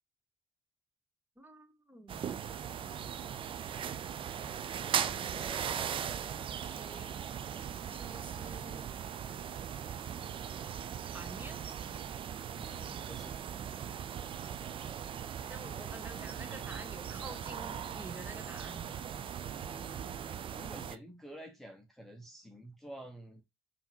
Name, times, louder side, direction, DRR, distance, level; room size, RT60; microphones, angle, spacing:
voice 1, 1.4-2.3 6.0-7.2 7.9-8.9 11.1-11.6 15.5-19.0, right 1 dB, 15° right, 1.2 m, -49 dB
sound 1, 2.1-21.0, right 8 dB, 40° right, 0.4 m, -39 dB
voice 2, 4.7-5.0 5.3-5.9 12.5-13.4 19.7-23.4, right 1 dB, ahead, 0.9 m, -50 dB
5.5 x 2.8 x 2.9 m
hypercardioid pair, 55°, 13 cm